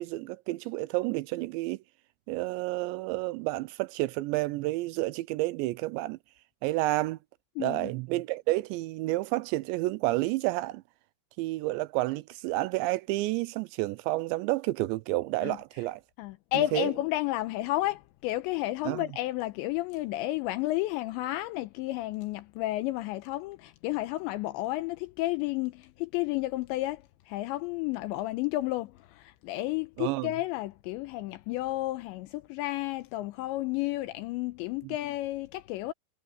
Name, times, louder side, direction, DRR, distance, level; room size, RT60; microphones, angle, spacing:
voice 1, 0.0-1.8 2.3-6.2 6.6-7.2 7.6-10.8 11.4-16.0 16.5-16.9 18.9-19.0 30.0-30.3, right 19 dB, 85° right, 2.6 m, -30 dB
voice 2, 7.6-7.9 15.4-15.6 16.2-35.9, left 17 dB, 80° left, 2.9 m, -32 dB
omnidirectional pair, 5.5 m